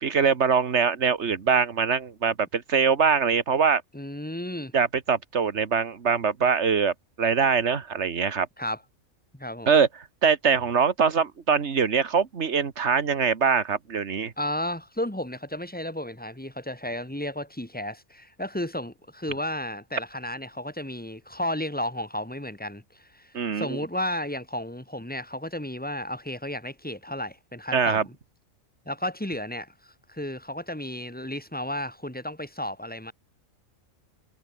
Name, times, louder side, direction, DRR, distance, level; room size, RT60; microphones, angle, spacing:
voice 1, 0.0-3.8 4.7-8.5 9.7-9.9 10.2-14.3 23.3-23.8 27.7-28.0, right 6 dB, 55° right, 1.8 m, -23 dB
voice 2, 3.9-4.7 8.6-8.8 9.3-9.7 14.4-28.1 28.9-33.1, left 1 dB, 5° left, 2.7 m, -33 dB
omnidirectional pair, 1.4 m